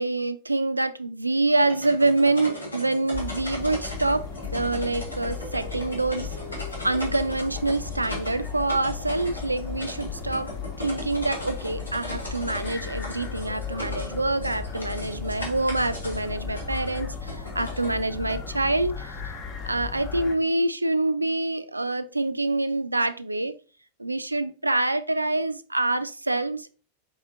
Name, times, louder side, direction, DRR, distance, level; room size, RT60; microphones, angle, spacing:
voice 1, 0.0-6.3 6.8-10.5 10.8-19.3 19.6-23.6 24.0-26.7, right 2 dB, 85° right, 0.3 m, -26 dB
sound 1, 1.5-18.5, left 1 dB, 85° left, 1.7 m, -39 dB
sound 2, 3.1-20.3, left 6 dB, 40° left, 1.0 m, -36 dB
4.9 x 3.5 x 2.6 m
figure-of-eight pair, 90°, 0 cm